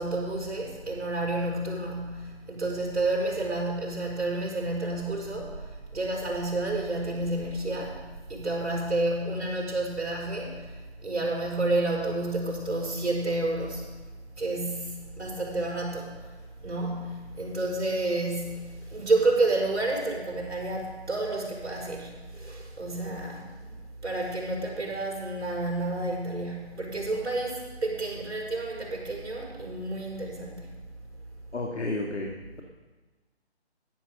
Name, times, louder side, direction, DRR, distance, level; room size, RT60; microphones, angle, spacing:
voice 1, 0.0-13.9 14.4-16.3 16.6-23.8 24.0-30.7, right 2 dB, 80° right, -2 dB, 5.6 m, -30 dB
voice 2, 31.5-32.3, left 2 dB, 80° left, 0 dB, 2.1 m, -31 dB
13.0 x 9.8 x 6.6 m, 1.3 s
figure-of-eight pair, 175°, 33 cm